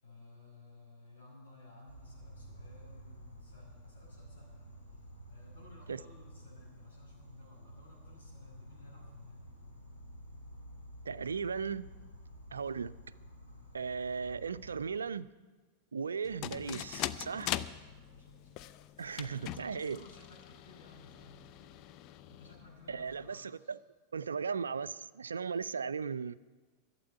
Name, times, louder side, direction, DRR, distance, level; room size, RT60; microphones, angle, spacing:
voice 1, 0.0-9.5 17.8-18.7 19.7-21.7 22.3-23.7, left 2 dB, 65° left, -4 dB, 5.7 m, -57 dB
Insect, 1.9-14.9, equal, 85° left, 2.5 m, -52 dB
voice 2, 11.1-11.9 12.5-13.0 13.7-15.3 15.9-17.5 19.0-20.0 22.9-23.8 24.1-26.3, right 6 dB, 70° right, 17 dB, 0.4 m, -37 dB
sound 1, 16.2-23.3, left 12 dB, 40° left, 0.4 m, -42 dB
12.0 x 7.6 x 9.5 m, 1.3 s
figure-of-eight pair, 90°, 0 cm